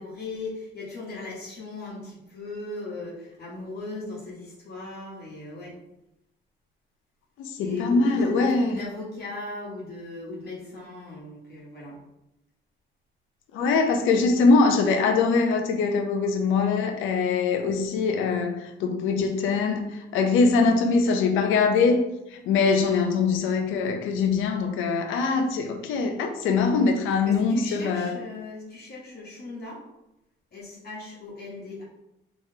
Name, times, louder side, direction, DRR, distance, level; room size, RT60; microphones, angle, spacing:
voice 1, 0.0-5.8 7.6-12.0 27.2-29.8 30.5-31.8, left 3 dB, 50° left, 1.1 m, -37 dB
voice 2, 7.4-8.7 13.5-28.2, left 4 dB, 90° left, 0.5 m, -23 dB
3.7 x 3.1 x 2.7 m
cardioid pair, 90°, 20 cm